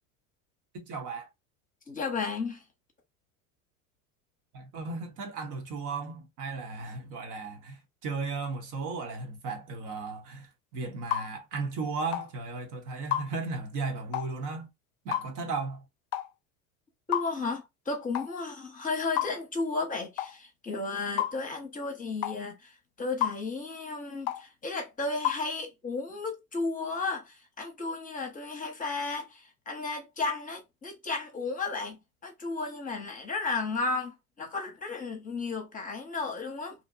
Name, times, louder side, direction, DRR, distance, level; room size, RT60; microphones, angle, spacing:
voice 1, 0.7-1.3 4.5-14.7 15.0-15.8, right 3 dB, 45° right, 0.9 m, -35 dB
voice 2, 1.9-2.6 17.1-36.7, left 3 dB, 20° left, 0.8 m, -34 dB
sound 1, 11.1-11.3 12.1-12.3 13.1-13.3 14.1-14.3 15.1-15.3 16.1-16.3 17.1-17.3 18.1-18.3 19.2-19.4 20.2-20.3 21.2-21.3 22.2-22.4 23.2-23.4 24.3-24.4 25.2-25.4, left 12 dB, 55° left, 0.5 m, -30 dB
2.6 x 2.1 x 2.5 m
hypercardioid pair, 90°, 42 cm